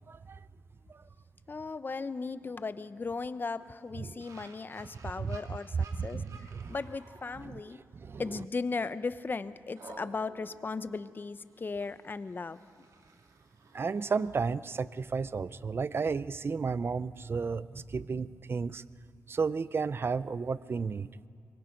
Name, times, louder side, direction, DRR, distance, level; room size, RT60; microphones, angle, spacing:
voice 1, 0.1-0.4 0.9-1.0 4.0-4.2 5.2-5.4 6.0-6.7 7.4-7.6 7.9-8.2 13.7-18.8 19.3-21.1, right 5 dB, 45° right, 17 dB, 0.5 m, -33 dB
voice 2, 1.5-7.8 8.2-12.6, left 4 dB, 35° left, 13 dB, 0.7 m, -37 dB
sound 1, 4.2-8.1 8.5-8.7 9.7-15.3, right 4 dB, 75° right, 2.0 m, -56 dB
24.0 x 21.5 x 5.2 m, 2.3 s
cardioid pair, 95°, 6 cm